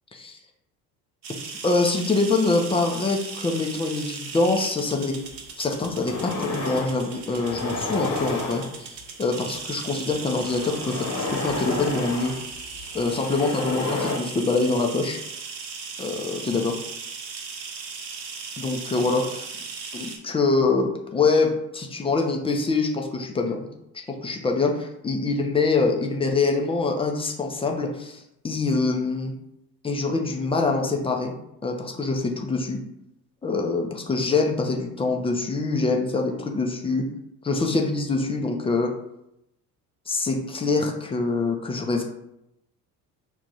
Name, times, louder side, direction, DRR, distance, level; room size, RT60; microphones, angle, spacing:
sound 1, 1.2-20.2, right 5 dB, 85° right, 0.7 m, -38 dB
voice 1, 1.6-5.1 5.6-8.9 9.2-12.3 12.9-15.2 16.0-16.8 18.6-19.5 19.9-23.7 23.9-29.3 29.8-31.3 31.6-32.8 33.4-37.0 37.4-38.9 40.1-42.0, left 3 dB, 15° left, 2 dB, 0.4 m, -24 dB
sound 2, 5.3-5.4 5.8-7.0 7.4-9.0 10.1-14.2, left 2 dB, 35° left, 0.9 m, -31 dB
3.3 x 2.5 x 4.0 m, 0.82 s
figure-of-eight pair, 55°, 49 cm